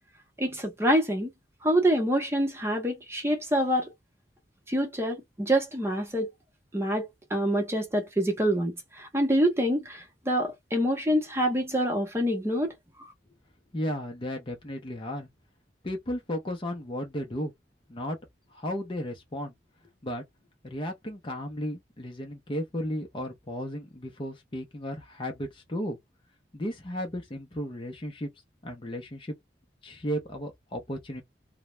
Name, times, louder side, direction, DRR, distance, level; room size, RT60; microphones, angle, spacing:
voice 1, 0.4-1.3 1.6-3.9 4.7-6.3 6.7-12.7, equal, 15° right, 0.7 m, -26 dB
voice 2, 13.7-15.3 15.8-17.5 17.9-18.2 18.5-19.5 20.0-20.2 20.6-26.0 26.5-28.3 28.6-29.3 29.8-31.2, equal, 30° left, 0.6 m, -34 dB
2.3 x 2.1 x 2.9 m
head